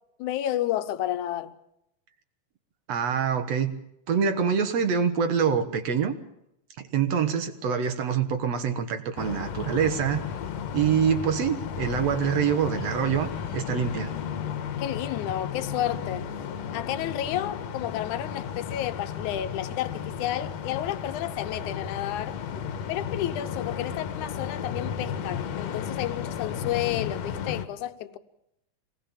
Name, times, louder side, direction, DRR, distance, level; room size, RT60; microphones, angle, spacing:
voice 1, 0.2-1.5 14.8-16.3 16.7-22.4 22.9-28.2, left 12 dB, 80° left, 2.4 m, -31 dB
voice 2, 2.9-3.7 4.1-6.1 6.8-10.2 10.7-14.1, right 7 dB, 60° right, 2.5 m, -25 dB
sound 1, 9.2-27.7, left 8 dB, 65° left, 2.3 m, -34 dB
25.0 x 19.0 x 7.3 m
omnidirectional pair, 3.4 m